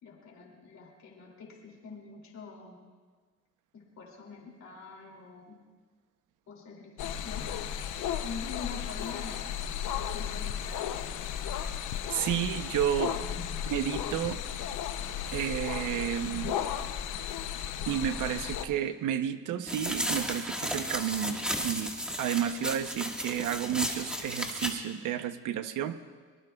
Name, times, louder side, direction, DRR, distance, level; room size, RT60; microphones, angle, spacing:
voice 1, 0.0-2.8 3.7-5.6 6.5-7.5 8.2-9.6 10.1-11.1 12.9-13.9, left 5 dB, 65° left, -2 dB, 2.9 m, -45 dB
sound 1, 7.0-18.7, left 9 dB, 80° left, 0.8 m, -34 dB
voice 2, 12.1-13.2 13.7-14.4 15.3-16.6 17.9-21.9 22.2-26.0, right 10 dB, 85° right, 10 dB, 0.9 m, -31 dB
sound 2, 19.7-24.7, equal, 5° right, 1.7 m, -34 dB
23.5 x 19.5 x 2.4 m, 1.5 s
cardioid pair, 90°, 30 cm